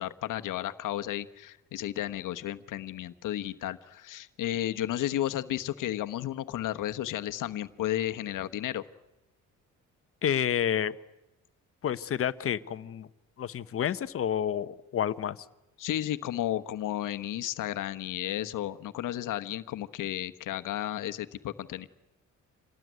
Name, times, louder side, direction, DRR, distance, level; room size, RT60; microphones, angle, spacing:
voice 1, 0.0-8.8 15.8-21.9, left 13 dB, 80° left, 9 dB, 1.1 m, -33 dB
voice 2, 10.2-10.9 11.8-13.1 13.4-15.4, left 9 dB, 45° left, 13 dB, 0.9 m, -29 dB
27.0 x 19.0 x 9.4 m, 0.98 s
cardioid pair, 145°, 31 cm